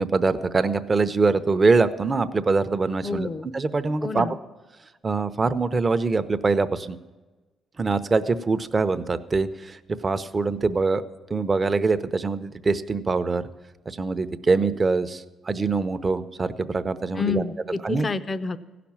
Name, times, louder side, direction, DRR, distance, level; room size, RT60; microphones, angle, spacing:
voice 1, 0.0-4.4 5.0-7.0 7.8-9.8 10.0-11.0 11.3-13.4 13.9-17.4 17.8-18.1, right 3 dB, 30° right, 11 dB, 0.7 m, -23 dB
voice 2, 3.0-3.5 4.0-4.4 17.2-18.6, left 4 dB, 35° left, 12 dB, 0.6 m, -28 dB
16.0 x 5.9 x 8.7 m, 1.2 s
cardioid pair, 90°, 0 cm